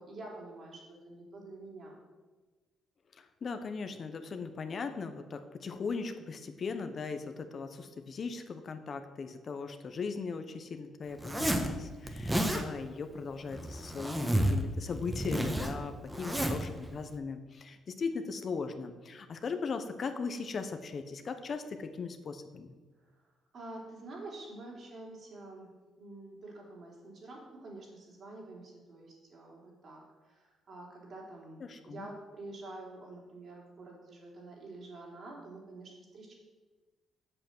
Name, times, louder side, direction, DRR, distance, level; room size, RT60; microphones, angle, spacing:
voice 1, 0.0-2.0 16.2-16.7 23.1-23.2 23.5-25.7 26.0-36.3, right 2 dB, 55° right, -2 dB, 3.9 m, -48 dB
voice 2, 3.1-22.7 31.6-32.1, left 5 dB, 50° left, 8 dB, 1.0 m, -38 dB
Zipper (clothing), 11.2-11.7 12.1-12.6 13.5-14.6 14.9-16.7, right 1 dB, 10° right, 1.3 m, -31 dB
7.9 x 6.6 x 7.8 m, 1.3 s
cardioid pair, 90°, 0 cm